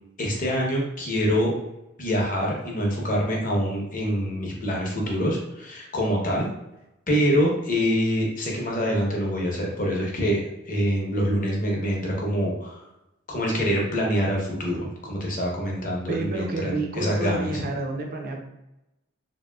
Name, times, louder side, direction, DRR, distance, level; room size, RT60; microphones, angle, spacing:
voice 1, 0.2-1.5 2.0-6.5 7.1-10.4 10.7-12.8 13.3-17.6, equal, 40° left, -2 dB, 0.7 m, -25 dB
voice 2, 16.1-18.4, right 2 dB, 45° right, 1 dB, 0.5 m, -29 dB
3.0 x 2.7 x 2.2 m, 0.93 s
head